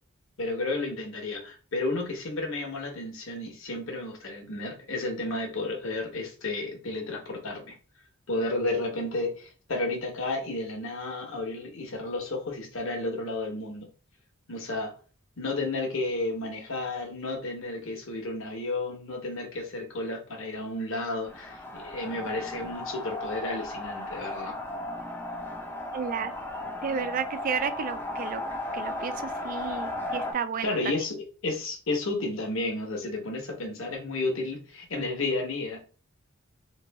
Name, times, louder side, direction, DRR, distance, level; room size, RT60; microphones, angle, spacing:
voice 1, 0.4-7.8 8.3-13.9 14.5-14.9 15.4-24.6 30.6-35.8, left 2 dB, 65° left, 1 dB, 1.1 m, -32 dB
sound 1, 21.2-30.3, left 2 dB, 10° left, 0.6 m, -35 dB
voice 2, 25.9-26.3 26.8-28.4 28.7-30.8, right 6 dB, 40° right, 11 dB, 0.3 m, -32 dB
3.2 x 2.4 x 3.4 m, 0.38 s
head